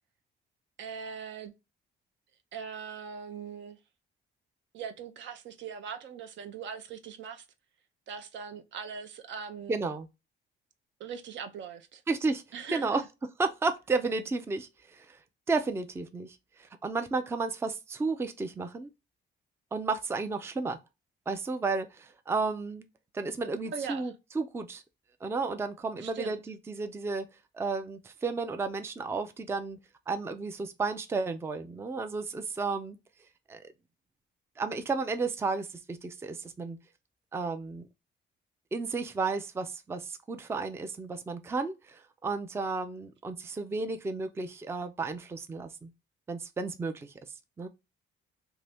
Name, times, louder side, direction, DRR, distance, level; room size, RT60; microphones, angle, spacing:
voice 1, 0.8-1.5 2.5-3.8 4.7-7.4 8.1-9.9 11.0-12.0 12.5-13.1 23.7-24.1 26.0-26.4, right 6 dB, 70° right, 0.5 m, -40 dB
voice 2, 9.7-10.1 12.1-12.4 12.7-13.0 13.4-15.2 15.5-18.9 19.7-20.8 21.3-22.9 23.1-24.8 25.2-27.3 27.5-29.8 30.1-33.0 33.5-33.6 34.6-36.8 37.3-37.9 38.7-45.9 46.3-47.1 47.6-47.7, right 4 dB, 15° right, 0.3 m, -32 dB
2.7 x 2.6 x 3.3 m
cardioid pair, 90°, 20 cm